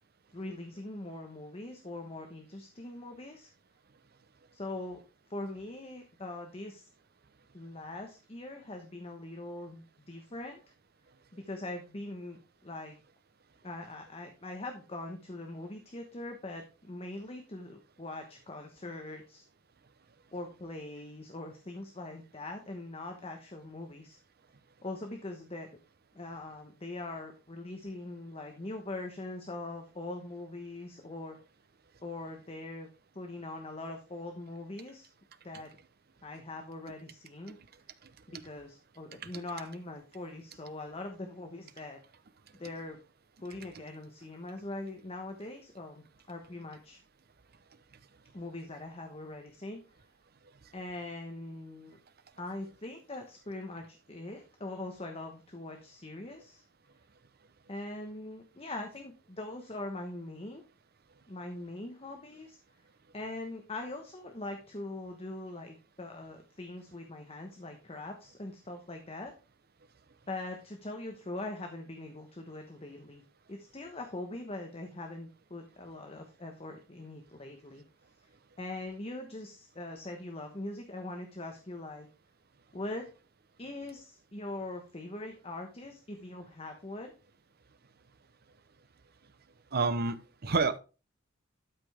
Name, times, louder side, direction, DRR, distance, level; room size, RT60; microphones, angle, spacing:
voice 1, 0.3-3.5 4.5-5.0 5.3-6.9 7.5-10.6 11.3-13.0 13.6-19.5 20.3-24.2 24.8-25.7 26.1-31.4 32.0-32.9 33.1-35.1 35.4-35.7 36.2-37.6 38.3-42.0 42.5-43.0 43.4-47.0 48.3-49.8 50.7-52.0 52.4-56.6 57.7-60.6 61.3-62.6 63.1-69.3 70.3-73.2 73.5-77.8 78.6-82.1 82.7-83.1 83.6-87.1, left 2 dB, 30° left, 4 dB, 1.1 m, -42 dB
voice 2, 89.7-90.8, right 4 dB, 50° right, 13 dB, 0.8 m, -29 dB
12.5 x 5.3 x 3.5 m, 0.32 s
head